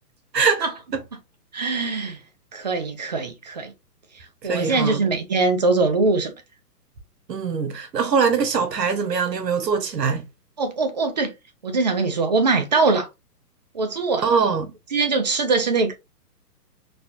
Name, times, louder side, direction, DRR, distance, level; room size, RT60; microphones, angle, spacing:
voice 1, 0.3-1.0 4.4-5.0 7.3-10.2 14.2-14.7, right 5 dB, 85° right, 1.2 m, -22 dB
voice 2, 1.5-2.2 2.5-3.7 4.4-6.3 10.6-11.3 11.6-13.1 13.7-14.3 14.9-15.9, right 3 dB, 30° right, 0.4 m, -22 dB
4.0 x 2.4 x 2.7 m
hypercardioid pair, 150°, 48 cm